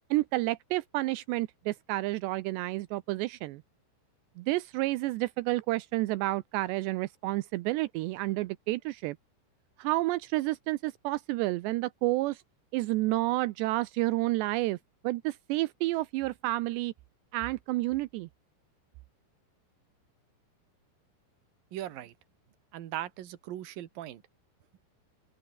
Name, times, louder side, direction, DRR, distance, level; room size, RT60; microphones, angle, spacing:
voice 1, 0.1-3.6 4.4-9.2 9.8-12.4 12.7-14.8 15.0-16.9 17.3-18.3, right 19 dB, 85° right, 2.5 m, -30 dB
voice 2, 21.7-22.1 22.7-24.2, right 13 dB, 60° right, 2.7 m, -39 dB
open air
omnidirectional pair, 5.9 m